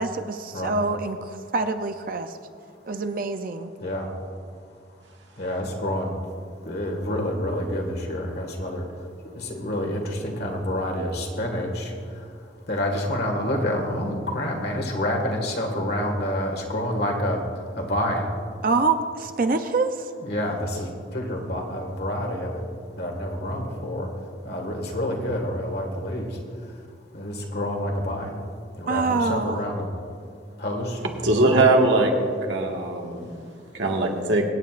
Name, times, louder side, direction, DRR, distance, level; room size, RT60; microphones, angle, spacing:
voice 1, 0.0-2.3 2.9-3.7 18.6-20.0 28.9-29.6, right 3 dB, 50° right, 8 dB, 0.5 m, -25 dB
voice 2, 5.4-6.1 6.7-8.8 9.5-11.9 12.7-17.4 17.8-18.2 20.2-20.9 21.1-22.6 23.0-24.1 24.5-26.3 27.2-28.3 28.8-29.9 30.6-31.0, left 1 dB, 55° left, 1 dB, 1.8 m, -28 dB
voice 3, 31.2-32.1 32.5-33.3 33.7-34.4, right 2 dB, 75° right, 1 dB, 1.6 m, -20 dB
24.0 x 9.3 x 2.5 m, 2.3 s
head